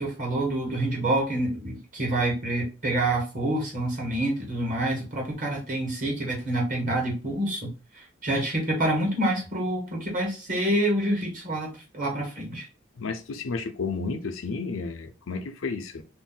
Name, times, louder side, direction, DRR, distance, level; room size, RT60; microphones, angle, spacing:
voice 1, 0.0-7.7 8.2-11.7 11.9-12.7, right 1 dB, 45° right, 1.2 m, -27 dB
voice 2, 13.0-16.0, left 4 dB, 85° left, 0.5 m, -32 dB
2.6 x 2.1 x 3.7 m
head